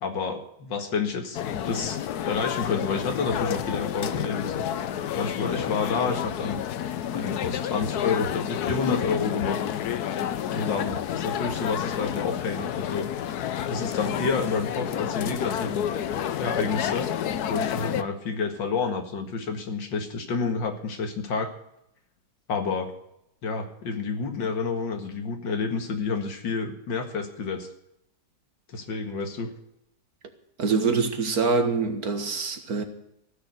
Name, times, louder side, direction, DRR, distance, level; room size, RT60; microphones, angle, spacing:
voice 1, 0.0-2.0 2.2-4.6 5.2-6.6 7.1-9.6 10.5-13.1 13.7-15.9 16.4-17.1 17.5-21.5 22.5-22.9 23.4-27.7 28.7-29.5, left 5 dB, 85° left, 2.5 m, -29 dB
sound 1, 1.3-18.0, left 10 dB, 65° left, 1.2 m, -30 dB
voice 2, 30.6-32.8, right 4 dB, 55° right, 2.0 m, -25 dB
15.5 x 6.9 x 9.4 m
omnidirectional pair, 1.9 m